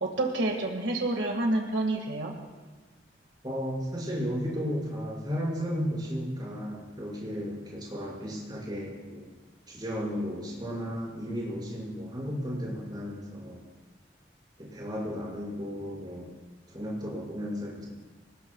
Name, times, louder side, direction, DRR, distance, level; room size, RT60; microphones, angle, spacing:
voice 1, 0.0-2.3, right 2 dB, 85° right, 2 dB, 2.0 m, -28 dB
voice 2, 3.4-9.3 9.7-13.6 14.6-16.3 16.7-17.8, equal, 25° right, -5 dB, 6.0 m, -34 dB
27.0 x 19.5 x 2.4 m, 1.3 s
head